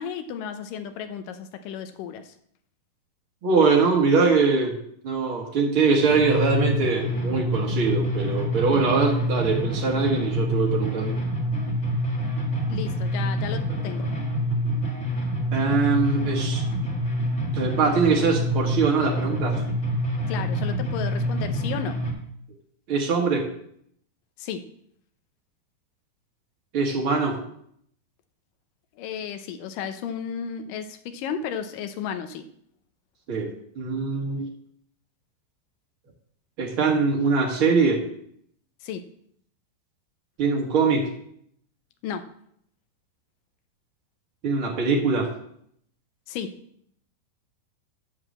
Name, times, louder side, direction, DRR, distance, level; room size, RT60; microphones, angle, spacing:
voice 1, 0.0-2.3 12.7-14.1 20.3-22.0 24.4-24.7 29.0-32.4 38.8-39.1 42.0-42.3 46.3-46.6, left 7 dB, 80° left, 8 dB, 2.0 m, -33 dB
voice 2, 3.4-4.8 5.0-11.2 15.5-16.6 17.5-19.6 22.9-23.5 26.7-27.4 33.3-33.5 33.7-34.4 36.6-38.0 40.4-41.1 44.4-45.3, right 4 dB, 50° right, 0 dB, 1.6 m, -22 dB
sound 1, 6.1-22.1, equal, 50° left, 0.8 m, -27 dB
11.0 x 4.8 x 7.4 m, 0.68 s
omnidirectional pair, 4.6 m